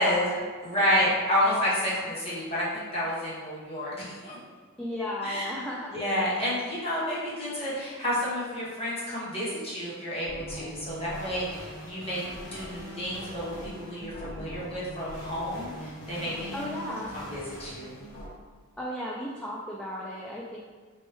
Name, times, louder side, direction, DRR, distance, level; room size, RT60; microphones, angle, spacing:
voice 1, 0.0-0.5 0.8-1.1 1.8-2.1 4.8-6.2 16.5-17.1 18.8-20.6, left 1 dB, 5° left, -5 dB, 0.3 m, -35 dB
voice 2, 0.6-4.4 5.2-5.6 5.9-12.2 12.5-16.6 17.1-18.0, equal, 30° left, -8 dB, 1.1 m, -30 dB
sound 1, 10.3-18.3, equal, 90° left, 1.2 m, -41 dB
4.3 x 3.2 x 3.1 m, 1.5 s
head